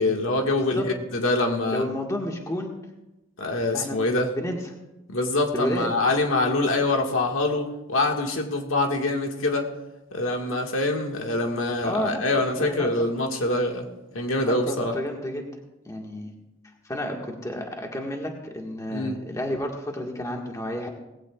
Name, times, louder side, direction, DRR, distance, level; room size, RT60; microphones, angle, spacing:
voice 1, 0.0-1.8 3.4-4.3 5.1-9.7 10.1-13.8 14.1-14.9 18.9-19.2, left 2 dB, 85° left, 2 dB, 1.8 m, -25 dB
voice 2, 1.7-2.7 3.7-4.0 4.4-4.7 5.5-5.9 11.8-13.1 14.4-15.4 15.9-16.3 16.8-20.9, left 1 dB, 15° left, 1 dB, 1.7 m, -31 dB
19.0 x 16.0 x 2.4 m, 0.98 s
head